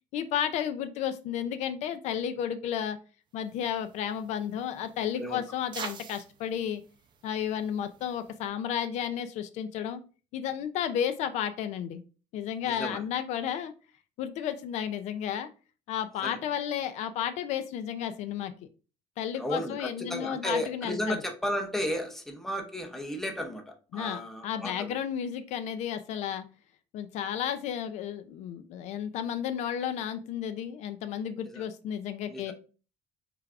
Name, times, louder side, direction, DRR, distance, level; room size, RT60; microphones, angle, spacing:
voice 1, 0.1-3.0 3.3-6.8 7.2-10.0 10.3-12.0 12.3-13.7 14.2-15.5 15.9-18.5 19.2-21.2 23.9-26.5 26.9-32.5, left 9 dB, 65° left, 9 dB, 0.4 m, -32 dB
sound 1, 3.4-8.5, right 7 dB, 40° right, 0.5 m, -47 dB
voice 2, 12.6-13.0 16.2-16.4 19.3-24.9 31.4-31.6 32.3-32.5, equal, 5° left, 3 dB, 0.6 m, -34 dB
4.6 x 3.3 x 2.4 m, 0.36 s
cardioid pair, 155°, 13 cm